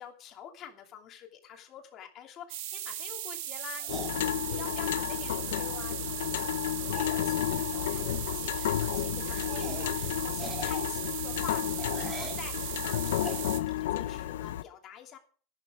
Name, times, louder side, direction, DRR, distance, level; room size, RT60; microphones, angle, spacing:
voice 1, 0.0-15.2, left 9 dB, 25° left, 3 dB, 2.8 m, -48 dB
sound 1, 2.5-13.6, right 12 dB, 55° right, 1.8 m, -38 dB
sound 2, 3.8-4.7 6.0-6.1 6.4-6.5 6.9-7.2 7.8-8.0 8.3-8.5 8.9-9.0 9.5-10.0 10.3-12.5 13.2-13.8, equal, ahead, 4.6 m, -42 dB
sound 3, 3.9-14.6, left 13 dB, 85° left, 0.8 m, -32 dB
13.5 x 12.0 x 5.0 m, 0.41 s
supercardioid pair, 175°, 0 cm